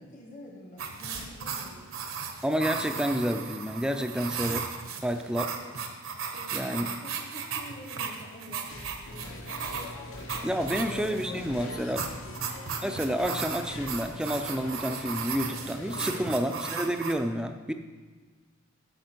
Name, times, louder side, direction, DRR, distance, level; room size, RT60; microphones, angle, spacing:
voice 1, 0.0-1.9 5.4-5.8 6.3-9.5 10.7-11.0 12.1-12.4 16.2-16.5, equal, 40° left, -1 dB, 1.2 m, -48 dB
sound 1, 0.8-17.1, right 6 dB, 70° right, 1.1 m, -36 dB
sound 2, 1.1-1.7 3.8-3.9 5.0-5.1 8.7-11.0 11.4-12.3 13.2-13.4 13.7-14.2, left 1 dB, 90° left, 2.1 m, -47 dB
voice 2, 2.4-4.6 5.0-5.5 6.5-6.9 10.4-12.1 12.8-17.7, equal, 5° right, 6 dB, 0.5 m, -29 dB
sound 3, 9.0-16.3, left 2 dB, 70° left, 1.1 m, -42 dB
12.5 x 5.8 x 4.5 m, 1.4 s
head